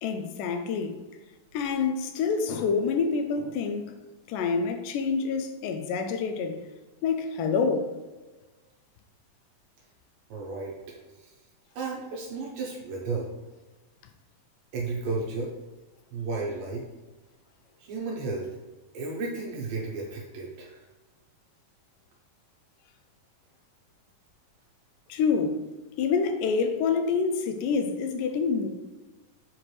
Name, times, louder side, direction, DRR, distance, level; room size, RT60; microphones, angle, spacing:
voice 1, 0.0-1.0 1.5-4.0 4.3-6.6 7.0-7.9 25.1-25.6 26.0-28.7, left 5 dB, 80° left, 2.1 m, -27 dB
voice 2, 10.3-11.3 11.8-13.3 14.7-15.5 16.1-16.9 17.8-18.5 18.9-20.8, right 3 dB, 80° right, 2.6 m, -33 dB
7.4 x 4.4 x 3.2 m
omnidirectional pair, 4.0 m